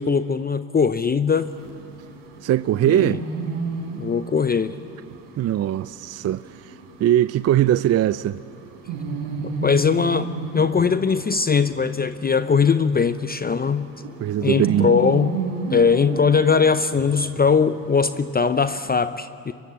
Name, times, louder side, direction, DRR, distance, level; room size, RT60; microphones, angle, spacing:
voice 1, 0.0-1.5 2.9-3.2 4.0-4.7 9.4-13.9 14.4-15.4 15.7-19.5, left 5 dB, 20° left, 0.7 m, -20 dB
sound 1, 1.3-18.9, right 4 dB, 70° right, 5.5 m, -33 dB
voice 2, 2.4-3.2 5.4-8.4 14.2-14.9, right 12 dB, 35° right, 0.5 m, -21 dB
24.0 x 22.5 x 7.7 m
hypercardioid pair, 70°, 46 cm